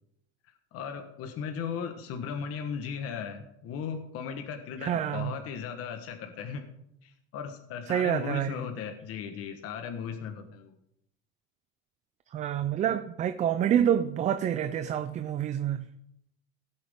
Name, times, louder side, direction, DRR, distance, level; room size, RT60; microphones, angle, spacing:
voice 1, 0.7-6.7 7.0-10.8, left 6 dB, 40° left, 1.2 m, -37 dB
voice 2, 4.8-5.3 7.9-8.6 12.3-15.9, right 9 dB, 25° right, 0.3 m, -27 dB
16.5 x 8.7 x 3.6 m
cardioid pair, 155°, 34 cm